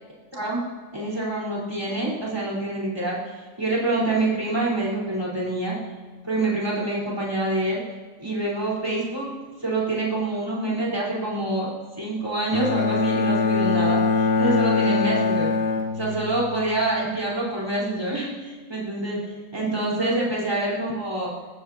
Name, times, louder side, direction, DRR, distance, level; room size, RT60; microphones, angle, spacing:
voice 1, 0.9-3.2 3.6-5.8 6.2-7.8 8.2-9.3 9.6-11.7 12.0-15.5 15.9-19.2 19.5-21.3, right 2 dB, 10° right, -6 dB, 4.5 m, -26 dB
Bowed string instrument, 12.5-16.6, left 4 dB, 60° left, 1.3 m, -23 dB
21.5 x 15.5 x 2.9 m, 1.5 s
omnidirectional pair, 2.0 m